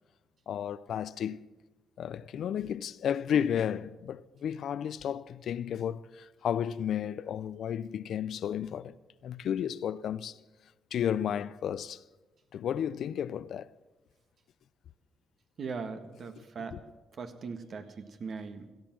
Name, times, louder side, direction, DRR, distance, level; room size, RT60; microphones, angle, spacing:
voice 1, 0.5-1.4 2.0-9.0 9.2-10.3 10.9-12.0 12.5-13.7 16.4-16.5 16.7-16.8, left 9 dB, 65° left, 0.5 m, -32 dB
voice 2, 15.6-16.8 17.2-18.7, right 5 dB, 50° right, 1.6 m, -39 dB
17.0 x 13.5 x 6.1 m
cardioid pair, 90°, 0 cm